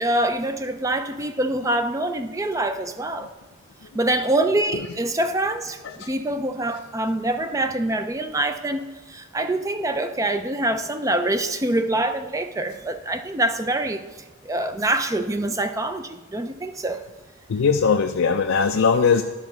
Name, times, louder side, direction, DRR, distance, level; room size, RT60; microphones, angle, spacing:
voice 1, 0.0-3.3 3.9-14.0 14.4-17.0, right 1 dB, 15° right, 8 dB, 0.4 m, -25 dB
voice 2, 17.5-19.2, left 5 dB, 85° left, 5 dB, 0.5 m, -19 dB
11.5 x 4.1 x 5.9 m, 1.2 s
head